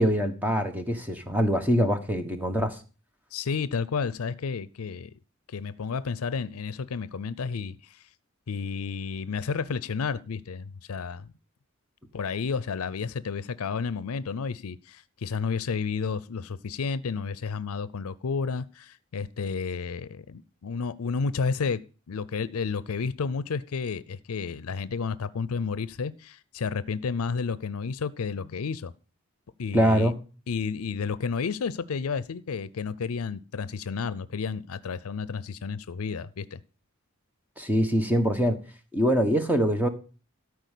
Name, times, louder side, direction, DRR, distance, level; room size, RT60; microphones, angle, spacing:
voice 1, 0.0-2.8 29.7-30.1 37.6-38.6 38.9-39.9, equal, 10° right, 1.3 m, -24 dB
voice 2, 3.3-5.1 5.5-8.0 8.5-11.3 12.1-21.8 22.1-28.9 29.6-30.1 30.5-36.6, left 5 dB, 90° left, 0.5 m, -31 dB
13.0 x 4.8 x 8.3 m
head